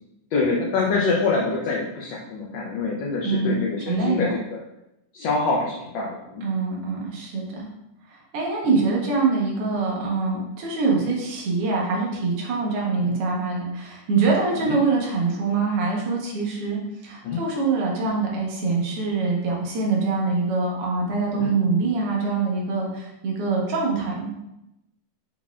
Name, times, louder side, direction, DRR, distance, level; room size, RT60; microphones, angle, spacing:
voice 1, 0.3-4.4 5.1-6.4 8.7-8.8 10.9-11.0 14.6-14.8 17.2-17.4 21.3-21.5, left 3 dB, 80° left, -3 dB, 1.5 m, -25 dB
voice 2, 3.2-4.3 6.4-7.7 8.1-24.3, right 4 dB, 65° right, -3 dB, 1.5 m, -24 dB
5.5 x 4.0 x 2.4 m, 0.90 s
omnidirectional pair, 3.8 m